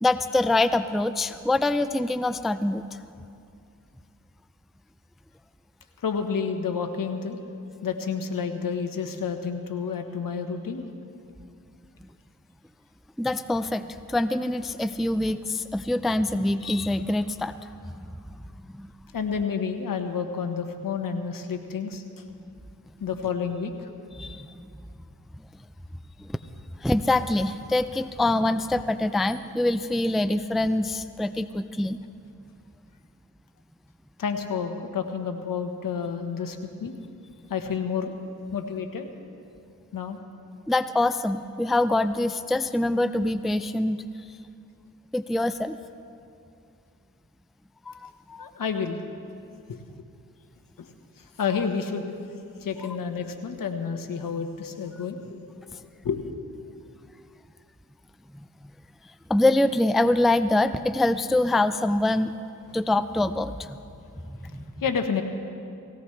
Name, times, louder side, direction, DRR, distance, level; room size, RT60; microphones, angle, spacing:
voice 1, 0.0-3.0 13.2-17.5 18.7-18.9 24.2-24.6 26.2-26.4 26.8-32.0 40.7-44.0 45.1-45.8 47.9-48.5 58.3-58.4 59.3-62.3 62.7-63.8 64.3-64.6, left 2 dB, ahead, 12 dB, 0.4 m, -25 dB
voice 2, 6.0-7.4 7.8-10.8 19.1-22.0 23.0-23.9 34.2-36.9 37.5-38.1 38.5-39.1 39.9-40.2 48.4-49.0 49.7-49.8 50.8-50.9 51.2-52.2 52.6-55.4 56.0-56.2 64.8-65.2, left 6 dB, 70° left, 5 dB, 1.3 m, -30 dB
18.5 x 17.5 x 3.3 m, 2.5 s
cardioid pair, 60°, 35 cm